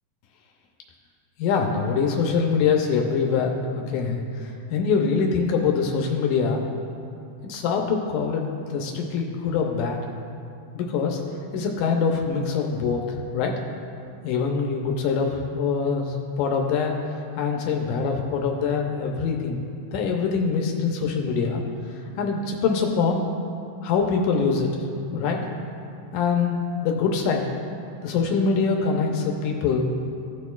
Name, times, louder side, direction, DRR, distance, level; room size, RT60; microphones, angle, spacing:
voice 1, 1.4-6.6 7.4-8.5 8.7-10.0 10.8-11.2 11.5-13.0 13.3-13.5 14.2-17.0 17.4-19.6 19.9-21.6 22.2-23.2 23.8-24.7 25.1-25.4 26.1-26.6 26.8-27.5 28.0-29.9, left 5 dB, 90° left, 1 dB, 2.2 m, -24 dB
16.0 x 6.4 x 2.3 m, 2.6 s
omnidirectional pair, 3.7 m